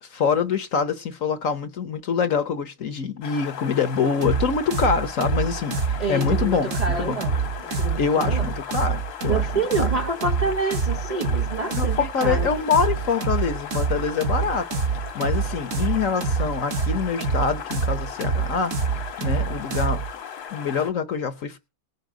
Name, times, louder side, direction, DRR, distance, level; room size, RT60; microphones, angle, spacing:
voice 1, 0.0-7.2 8.0-9.5 9.8-9.9 11.7-18.7 19.2-20.0 20.5-21.6, left 6 dB, 55° left, 1.0 m, -25 dB
sound 1, 3.2-20.9, left 8 dB, 75° left, 2.2 m, -37 dB
sound 2, 4.2-20.1, right 5 dB, 50° right, 1.2 m, -26 dB
voice 2, 6.0-7.4 7.6-8.5 9.3-12.5, right 3 dB, 70° right, 0.3 m, -28 dB
19.0 x 6.4 x 5.0 m
omnidirectional pair, 2.1 m